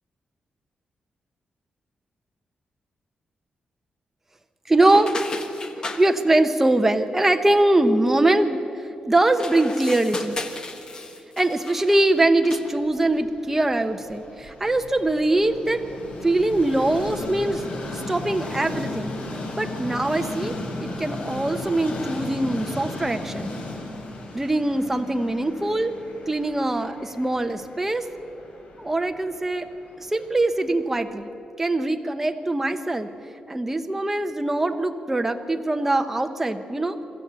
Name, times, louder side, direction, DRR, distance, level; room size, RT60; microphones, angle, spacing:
voice 1, 4.7-5.1 6.0-8.6 9.1-10.4 11.4-15.8 16.2-17.6 17.9-19.1 19.6-20.5 20.8-23.5 24.3-25.9 26.3-28.1 28.8-29.7 30.0-31.3 31.6-33.1 33.5-37.0, right 2 dB, 10° right, 6 dB, 0.8 m, -22 dB
sound 1, 4.8-6.0 9.3-12.1 12.4-12.8, left 2 dB, 30° left, 1.3 m, -34 dB
Train, 12.9-31.0, left 2 dB, 55° left, 3.2 m, -36 dB
24.0 x 13.5 x 8.1 m, 2.7 s
wide cardioid pair, 155°, 2 cm